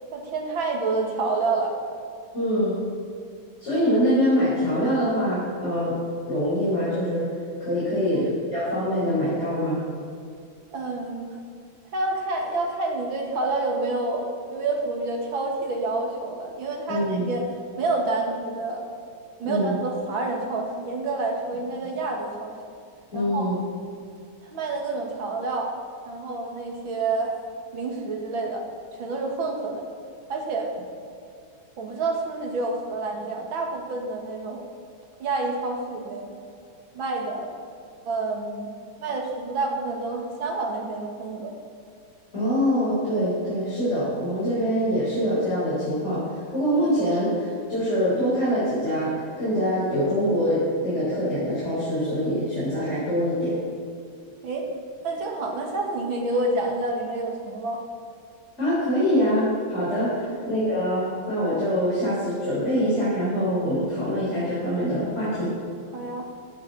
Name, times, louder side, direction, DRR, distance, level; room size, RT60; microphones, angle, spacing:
voice 1, 0.1-1.8 8.1-8.3 10.7-11.4 11.9-17.5 17.8-18.8 19.4-22.5 23.1-23.5 24.4-25.7 26.1-27.3 27.7-28.6 28.9-29.8 30.3-30.7 31.8-34.6 35.2-36.4 36.9-37.5 38.1-38.7 39.0-41.6 54.4-54.7 55.0-57.8 60.2-60.4 65.9-66.3, right 3 dB, 75° right, 1 dB, 2.4 m, -28 dB
voice 2, 2.3-2.8 3.6-6.0 6.3-7.3 7.6-9.9 16.9-17.3 19.4-19.8 23.1-23.6 42.3-53.5 58.6-65.5, equal, 35° left, -10 dB, 4.2 m, -24 dB
15.5 x 11.0 x 4.0 m, 2.4 s
omnidirectional pair, 2.2 m